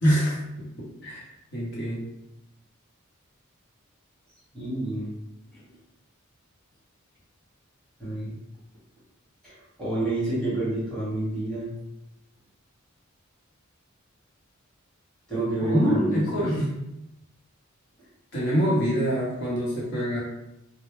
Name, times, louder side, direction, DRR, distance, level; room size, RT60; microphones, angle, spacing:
voice 1, 0.0-0.4 0.8-1.3 1.5-2.0 15.6-16.6 18.3-20.2, equal, 55° left, -7 dB, 0.9 m, -25 dB
voice 2, 4.5-5.1 5.5-5.6 8.0-8.3 9.4-11.7 15.3-16.7, right 2 dB, 5° left, -10 dB, 1.0 m, -29 dB
2.1 x 2.1 x 3.2 m, 0.86 s
head